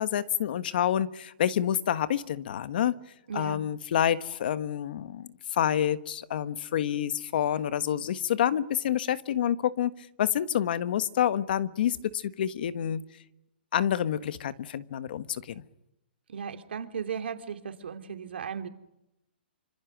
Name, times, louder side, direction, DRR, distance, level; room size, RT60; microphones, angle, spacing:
voice 1, 0.0-2.9 3.3-9.9 10.2-13.0 13.7-15.6, left 10 dB, 60° left, 13 dB, 1.4 m, -28 dB
voice 2, 3.3-3.6 16.3-18.7, right 7 dB, 75° right, 6 dB, 3.0 m, -36 dB
26.5 x 26.0 x 6.2 m, 0.89 s
hypercardioid pair, 150°, 6 cm